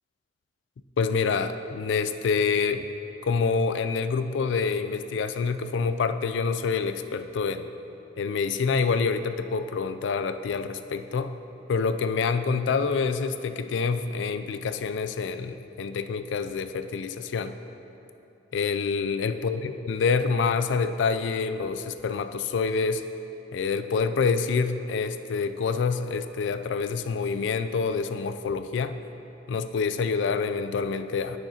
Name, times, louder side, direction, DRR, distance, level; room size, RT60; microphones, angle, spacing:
voice 1, 1.0-2.9 3.2-7.7 8.2-11.3 11.7-17.6 18.5-23.0 23.5-28.9 29.5-31.4, left 5 dB, 80° left, 10 dB, 0.4 m, -27 dB
11.5 x 6.2 x 2.8 m, 2.9 s
head